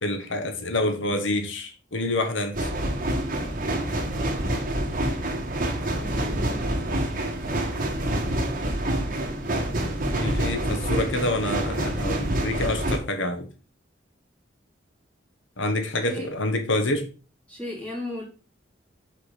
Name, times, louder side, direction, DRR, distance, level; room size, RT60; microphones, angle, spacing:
voice 1, 0.0-2.7 10.1-13.5 15.6-17.1, left 2 dB, 85° left, 1.3 m, -27 dB
sound 1, 2.5-13.0, right 1 dB, 45° right, 1.7 m, -27 dB
voice 2, 5.9-6.9 16.0-16.3 17.5-18.2, left 1 dB, 5° left, 3.6 m, -36 dB
6.1 x 5.8 x 5.0 m
head